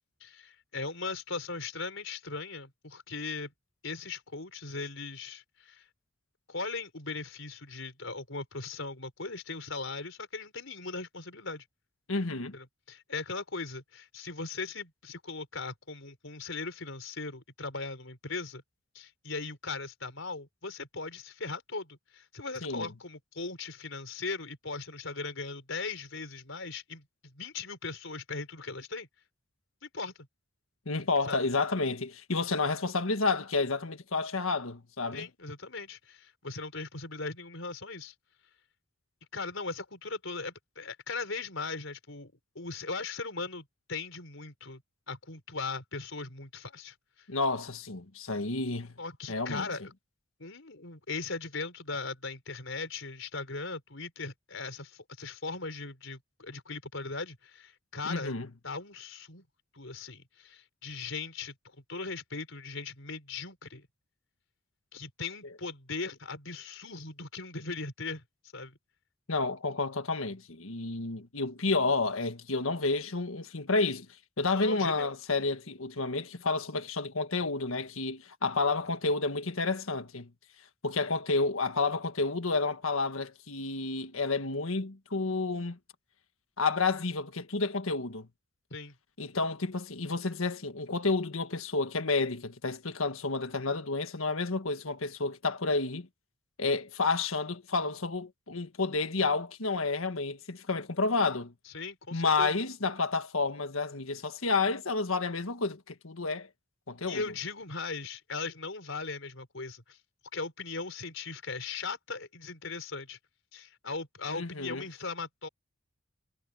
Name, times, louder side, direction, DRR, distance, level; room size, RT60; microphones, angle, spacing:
voice 1, 0.2-3.5 3.8-5.8 6.5-11.6 12.5-18.6 18.9-29.1 29.8-30.3 31.2-31.4 35.1-38.1 39.3-44.8 45.1-46.9 49.0-49.8 50.4-58.3 58.6-59.4 59.7-63.8 64.9-68.2 68.5-68.8 74.5-75.1 88.7-88.9 101.7-102.6 107.1-110.0 110.3-113.2 113.5-115.5, left 4 dB, 70° left, 4.5 m, -39 dB
voice 2, 12.1-12.5 22.6-22.9 30.9-35.3 47.3-48.9 49.3-49.7 58.0-58.5 69.3-74.1 74.4-80.3 80.8-85.8 86.6-88.3 89.2-96.1 96.6-101.5 102.1-106.5 106.9-107.2 114.3-114.8, left 3 dB, 85° left, 1.6 m, -30 dB
head